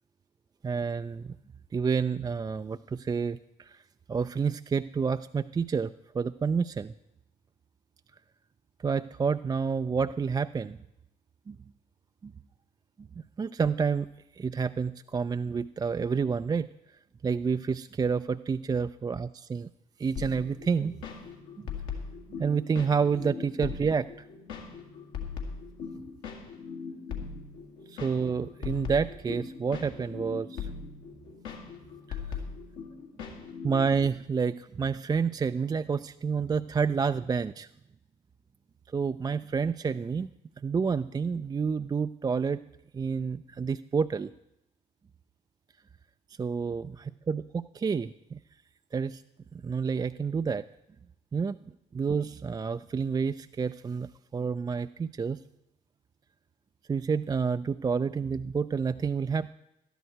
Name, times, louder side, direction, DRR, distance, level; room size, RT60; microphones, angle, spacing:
voice 1, 0.6-1.4 1.7-3.8 4.1-6.9 8.8-10.8 11.5-11.6 12.2-12.3 13.4-14.1 14.4-16.7 17.2-19.7 20.0-21.0 22.4-24.1 27.9-30.7 32.1-32.4 33.6-37.7 38.9-40.3 40.6-42.6 42.9-44.3 46.4-48.4 48.9-49.2 49.6-50.6 51.3-51.6 51.9-55.4 56.9-59.5, right 5 dB, 20° right, 10 dB, 0.3 m, -29 dB
sound 1, 20.2-34.1, left 6 dB, 75° left, 2.0 m, -40 dB
12.5 x 10.0 x 4.5 m, 0.85 s
figure-of-eight pair, 45°, 20 cm